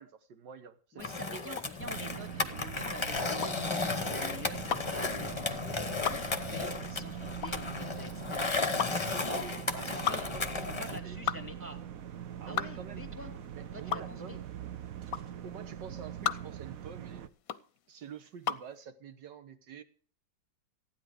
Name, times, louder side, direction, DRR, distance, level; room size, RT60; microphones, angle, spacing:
voice 1, 0.0-1.7 8.8-10.5 10.8-11.2 12.4-13.1 13.6-14.5 15.4-17.3 17.9-19.8, right 7 dB, 75° right, 1.8 m, -47 dB
voice 2, 0.9-4.7 4.9-5.8 6.1-8.9 9.2-9.5 9.8-10.2 10.5-11.8 12.5-13.3 13.7-14.4, left 2 dB, 5° right, 2.2 m, -46 dB
Skateboard, 1.0-11.0, left 4 dB, 20° left, 0.8 m, -34 dB
sound 1, 1.5-18.7, left 8 dB, 60° left, 1.0 m, -37 dB
sound 2, 1.8-17.3, right 9 dB, 60° right, 1.1 m, -43 dB
15.0 x 9.7 x 4.9 m
omnidirectional pair, 1.9 m